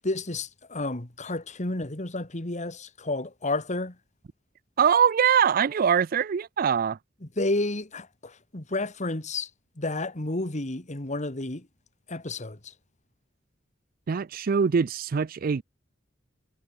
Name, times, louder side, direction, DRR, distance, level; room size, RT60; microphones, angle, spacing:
voice 1, 0.0-4.0 7.4-9.5 9.8-11.7 12.1-12.6, left 2 dB, 40° left, 2.0 m, -31 dB
voice 2, 4.8-7.0 14.1-15.6, right 7 dB, 50° right, 0.4 m, -23 dB
head